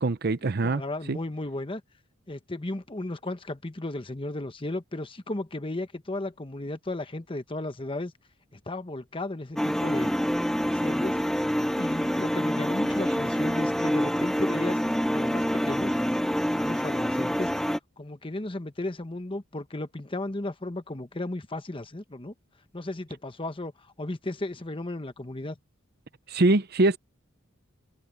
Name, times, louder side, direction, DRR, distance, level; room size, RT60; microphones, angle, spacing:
voice 1, 0.0-0.8 1.1-1.2 26.3-27.0, right 2 dB, 50° right, 0.7 m, -23 dB
voice 2, 0.6-1.8 2.3-8.1 8.7-10.1 10.6-11.2 11.6-14.8 15.1-16.0 16.2-17.5 18.0-22.3 22.7-23.7 24.0-25.5, left 2 dB, 25° left, 1.1 m, -35 dB
sound 1, 9.6-17.8, equal, ahead, 0.8 m, -26 dB
head